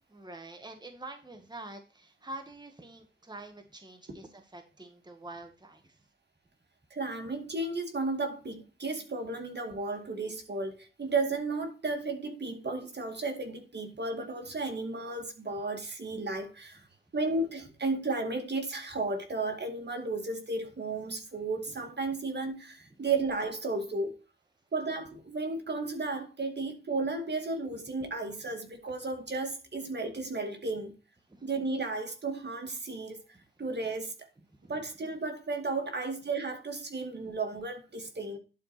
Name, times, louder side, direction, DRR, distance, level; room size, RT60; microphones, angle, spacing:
voice 1, 0.1-6.0 31.3-31.5 34.5-34.7, right 2 dB, 20° right, 1.7 m, -46 dB
voice 2, 6.9-16.8 17.1-24.2 24.7-31.0 31.4-33.2 33.6-34.1 34.7-38.4, right 3 dB, 55° right, 2.2 m, -33 dB
11.0 x 4.6 x 4.3 m
wide cardioid pair, 70°, 21 cm